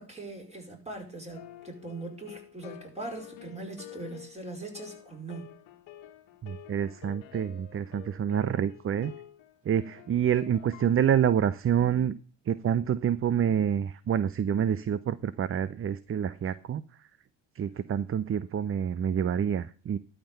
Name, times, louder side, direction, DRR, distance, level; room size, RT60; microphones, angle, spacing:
voice 1, 0.0-5.5, right 2 dB, 15° right, 1 dB, 5.2 m, -41 dB
sound 1, 1.3-10.9, left 12 dB, 75° left, 1.5 m, -49 dB
voice 2, 6.4-9.1 9.7-12.2 12.5-16.8 17.6-20.0, right 8 dB, 30° right, 17 dB, 0.5 m, -27 dB
12.5 x 5.9 x 6.5 m, 0.38 s
hypercardioid pair, 60°, 46 cm